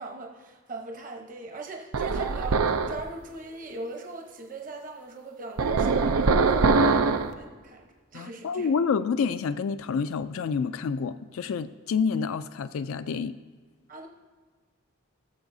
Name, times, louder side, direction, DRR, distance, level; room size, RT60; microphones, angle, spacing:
voice 1, 0.0-8.7 13.9-14.1, right 2 dB, 40° right, 2 dB, 0.9 m, -40 dB
sound 1, 1.9-3.0 5.6-7.3, right 4 dB, 90° right, 0.5 m, -22 dB
voice 2, 8.1-13.4, left 5 dB, 75° left, 10 dB, 0.3 m, -28 dB
17.0 x 7.3 x 2.7 m, 1.5 s
head